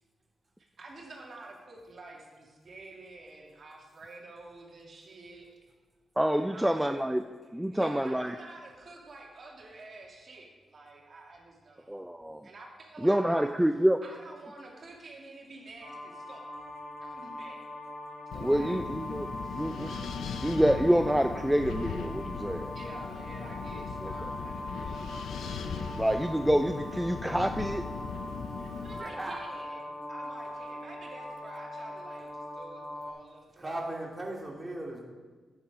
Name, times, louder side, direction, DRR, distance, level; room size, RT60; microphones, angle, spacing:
voice 1, 0.8-5.5 6.3-7.0 7.4-11.9 12.4-13.5 14.0-16.5 17.0-17.7 18.3-18.8 19.4-19.6 22.7-25.4 28.6-33.8, right 2 dB, 55° right, -1 dB, 2.5 m, -49 dB
voice 2, 6.2-7.2 7.5-8.3 11.9-12.4 13.0-14.0 18.4-19.3 19.5-19.9 20.4-22.7 24.0-24.1 25.9-27.9, equal, 5° right, 7 dB, 0.5 m, -27 dB
sound 1, 15.8-33.1, left 1 dB, 35° left, 3.4 m, -41 dB
Wind, 18.3-29.0, left 6 dB, 85° left, 0.6 m, -38 dB
voice 3, 29.0-29.4 33.6-35.0, right 1 dB, 25° right, -2 dB, 2.9 m, -37 dB
10.5 x 8.7 x 5.0 m, 1.4 s
cardioid pair, 55°, 0 cm